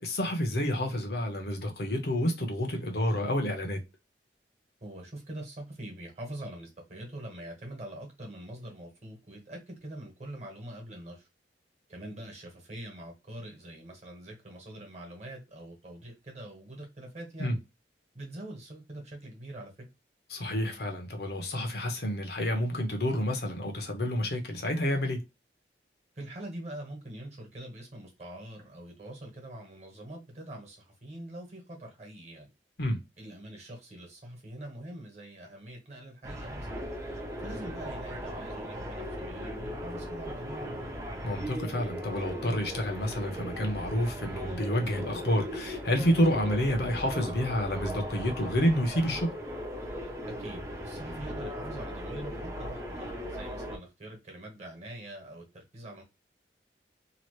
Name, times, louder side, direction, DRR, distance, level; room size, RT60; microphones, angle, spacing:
voice 1, 0.0-3.8 17.4-17.6 20.3-25.2 32.8-33.0 41.2-49.3, equal, 60° left, 0.8 m, -29 dB
voice 2, 4.8-11.3 11.9-17.6 18.1-19.7 26.1-32.5 33.2-36.8 37.4-40.9 46.4-46.7 50.2-56.0, right 1 dB, 40° right, 1.2 m, -44 dB
sound 1, 36.2-53.8, equal, 15° right, 0.6 m, -38 dB
2.9 x 2.4 x 3.0 m
head